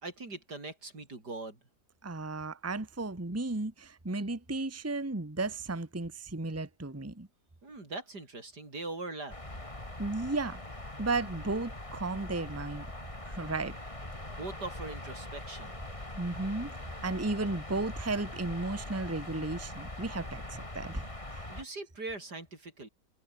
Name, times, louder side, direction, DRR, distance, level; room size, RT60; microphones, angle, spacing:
voice 1, 0.0-1.6 7.6-9.3 14.3-15.8 21.5-22.9, right 2 dB, 80° right, 6.0 m, -41 dB
voice 2, 2.0-7.3 10.0-10.6 11.0-12.9 13.2-13.7 16.2-16.7 17.0-21.4, right 2 dB, 10° right, 1.4 m, -34 dB
sound 1, 9.3-21.6, left 1 dB, 20° left, 3.7 m, -42 dB
omnidirectional pair, 1.7 m